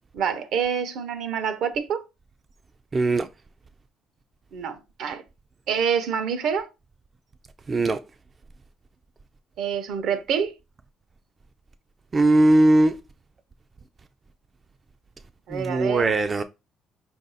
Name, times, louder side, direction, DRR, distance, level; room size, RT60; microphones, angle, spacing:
voice 1, 0.1-2.0 4.5-5.2 5.7-6.7 9.6-10.5 15.5-16.2, right 7 dB, 70° right, 0.7 m, -26 dB
voice 2, 2.9-3.3 7.7-8.0 12.1-13.0 15.5-16.4, right 2 dB, 30° right, 0.3 m, -19 dB
4.9 x 2.6 x 3.9 m
cardioid pair, 105°, 0 cm